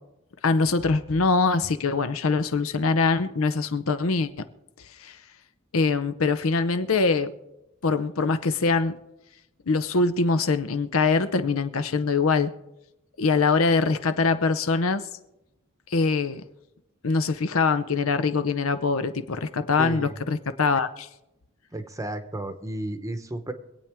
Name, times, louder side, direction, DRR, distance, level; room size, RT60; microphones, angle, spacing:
voice 1, 0.4-4.5 5.0-5.2 5.7-7.3 7.8-8.9 9.7-12.5 13.2-15.0 15.9-16.4 17.0-21.1, left 4 dB, 80° left, 0.7 m, -23 dB
voice 2, 19.8-20.2 21.7-23.5, right 1 dB, 15° right, 0.9 m, -33 dB
24.5 x 8.6 x 3.5 m
head